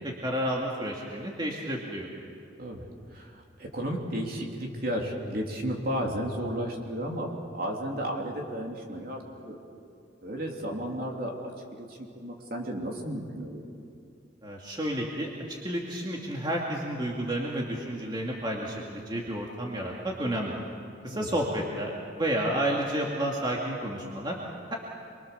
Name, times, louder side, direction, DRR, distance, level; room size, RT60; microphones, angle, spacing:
voice 1, 0.0-2.1 14.4-20.6 21.0-24.4 24.7-24.8, right 1 dB, 25° right, -2 dB, 2.3 m, -31 dB
voice 2, 2.6-7.3 7.5-9.6 10.2-11.5 11.8-13.6 21.1-21.3, equal, 50° right, 0 dB, 3.3 m, -33 dB
27.0 x 23.5 x 6.9 m, 2.4 s
head